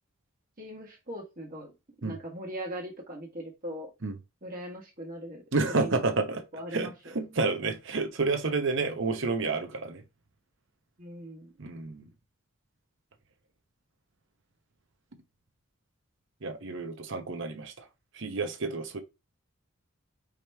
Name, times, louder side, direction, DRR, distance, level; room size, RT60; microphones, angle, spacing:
voice 1, 0.6-3.9 4.4-5.4 5.8-6.1 6.5-7.2 11.0-11.5, equal, 40° right, 1.4 m, -40 dB
voice 2, 5.5-6.4 6.7-6.9 7.1-10.0 11.6-12.0 16.4-17.7 18.2-19.0, right 3 dB, 60° right, 0.8 m, -29 dB
5.0 x 3.0 x 3.3 m
head